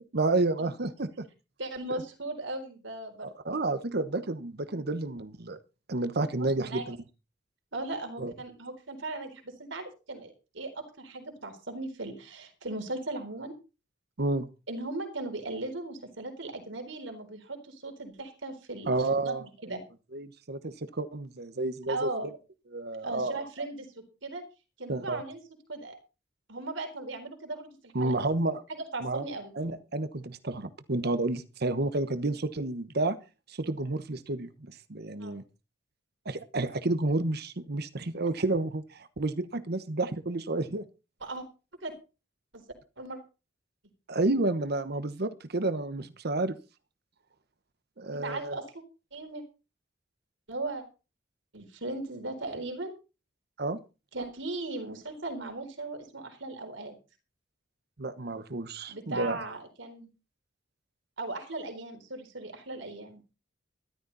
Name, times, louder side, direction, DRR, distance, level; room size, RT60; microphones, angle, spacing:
voice 1, 0.1-1.3 1.9-2.0 3.4-5.6 5.9-7.0 8.2-8.3 14.2-14.5 18.9-19.4 20.1-22.1 22.7-23.4 24.9-25.2 27.9-28.6 29.0-29.3 29.6-33.2 33.5-35.4 36.2-40.8 44.1-46.6 48.0-48.6 53.6-53.8 58.0-59.4, right 2 dB, 60° right, 1.1 m, -30 dB
voice 2, 1.6-3.6 6.2-6.3 6.6-6.9 7.7-13.5 14.7-19.8 21.9-22.3 23.0-23.9 24.2-24.4 24.8-25.4 25.7-26.0 26.5-28.1 28.7-29.5 35.2-35.3 41.2-41.4 41.8-41.9 42.5-42.6 43.0-43.2 48.2-48.6 49.1-49.4 50.5-50.8 51.5-52.9 54.1-56.9 58.9-60.1 61.2-63.2, right 2 dB, 80° right, 4.2 m, -38 dB
14.0 x 12.5 x 4.1 m
head